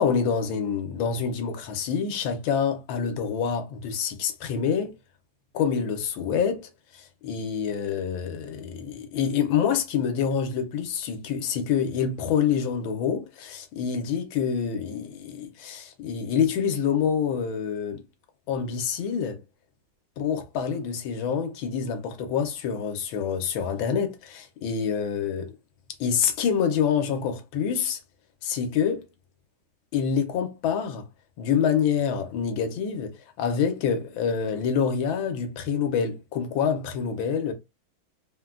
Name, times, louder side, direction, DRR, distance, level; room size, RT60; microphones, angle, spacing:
voice 1, 0.0-5.0 5.5-18.0 18.5-19.4 20.2-25.5 26.0-28.0 28.4-29.1 29.9-31.1 31.4-37.5, left 7 dB, 85° left, 1.4 m, -26 dB
3.8 x 2.2 x 2.3 m
omnidirectional pair, 2.1 m